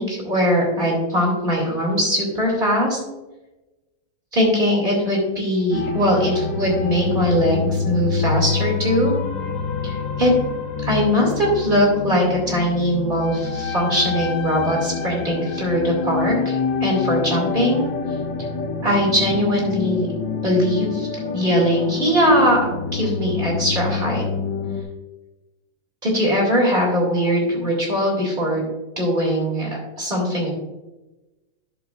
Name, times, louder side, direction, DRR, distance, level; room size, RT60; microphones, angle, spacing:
voice 1, 0.0-3.0 4.3-9.1 9.8-10.3 10.8-17.8 18.8-20.1 20.4-24.2 26.0-28.6 29.0-30.5, equal, 25° right, -3 dB, 2.5 m, -21 dB
sound 1, 5.7-24.8, left 5 dB, 70° left, 1.6 m, -27 dB
10.5 x 7.1 x 2.4 m, 1.1 s
omnidirectional pair, 2.3 m